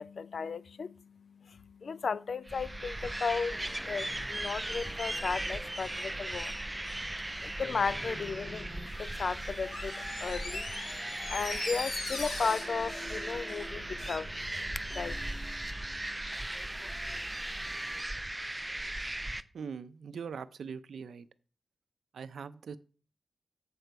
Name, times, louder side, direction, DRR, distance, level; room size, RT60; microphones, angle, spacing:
voice 1, 0.0-15.4 15.7-16.3, left 5 dB, 60° left, 0.3 m, -36 dB
sound 1, 2.5-19.4, right 1 dB, 15° right, 0.4 m, -38 dB
sound 2, 3.5-18.0, equal, 10° left, 0.9 m, -50 dB
Door, 9.6-14.2 14.5-14.6, left 2 dB, 75° left, 1.8 m, -41 dB
voice 2, 19.5-21.3 22.1-22.8, right 6 dB, 85° right, 0.5 m, -41 dB
7.6 x 6.7 x 4.5 m
wide cardioid pair, 110°, 0 cm